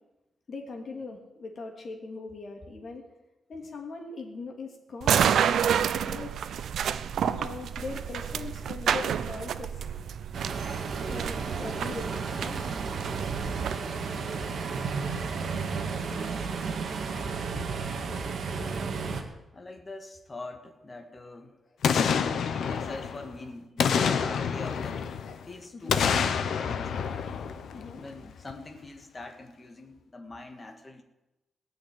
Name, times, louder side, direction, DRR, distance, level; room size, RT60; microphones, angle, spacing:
voice 1, 0.5-3.0 3.5-5.3 6.1-6.3 7.2-9.9 10.1-10.2 11.0-13.0 25.7-26.0 27.7-28.0, left 3 dB, 45° left, 1 dB, 2.9 m, -41 dB
sound 1, 5.0-13.7, right 8 dB, 75° right, 0.6 m, -29 dB
sound 2, 10.3-19.2, right 5 dB, 55° right, 1.8 m, -33 dB
voice 2, 13.7-15.0 15.9-16.4 18.5-18.8 19.5-21.6 22.3-25.0 25.4-26.1 26.6-27.2 27.9-31.0, left 2 dB, 25° left, 5 dB, 1.7 m, -44 dB
Boom, 21.8-23.3 23.8-25.4 25.9-28.1 28.5-28.6, left 7 dB, 75° left, 1.1 m, -27 dB
18.0 x 6.5 x 9.9 m, 0.99 s
wide cardioid pair, 170°, 0 cm